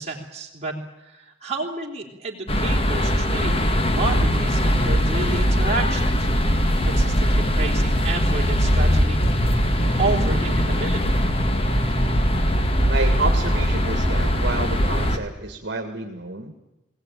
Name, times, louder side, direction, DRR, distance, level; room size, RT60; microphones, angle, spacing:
voice 1, 0.0-11.0, right 3 dB, 35° right, 0 dB, 3.5 m, -30 dB
sound 1, 2.5-15.2, equal, 30° left, 1.6 m, -21 dB
voice 2, 12.8-16.6, right 3 dB, 60° right, 4 dB, 1.9 m, -29 dB
20.5 x 18.0 x 9.1 m, 0.96 s
head